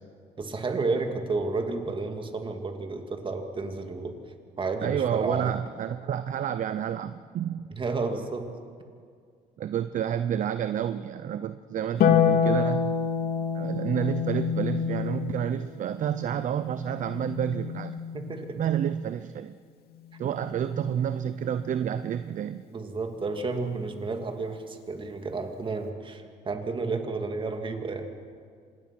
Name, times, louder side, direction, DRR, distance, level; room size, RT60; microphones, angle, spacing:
voice 1, 0.4-4.2 4.6-5.5 7.7-8.5 18.1-18.6 22.7-28.1, right 3 dB, 30° right, 5 dB, 2.5 m, -31 dB
voice 2, 4.8-7.7 9.6-12.9 13.5-18.0 18.5-19.6 20.2-22.6, right 9 dB, 50° right, 12 dB, 0.7 m, -29 dB
Harp, 12.0-18.5 20.1-21.1, left 7 dB, 65° left, 2.3 m, -28 dB
26.0 x 20.5 x 6.1 m, 2.1 s
cardioid pair, 110°, 17 cm